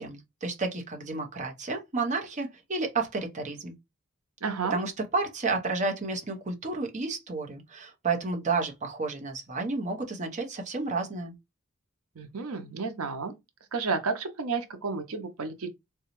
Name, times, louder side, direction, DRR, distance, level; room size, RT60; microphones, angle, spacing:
voice 1, 0.0-3.7 4.7-11.3, right 3 dB, 35° right, 0.8 m, -31 dB
voice 2, 4.4-4.8 12.2-13.3 13.7-15.7, right 4 dB, 85° right, 0.7 m, -31 dB
3.9 x 2.3 x 2.9 m
head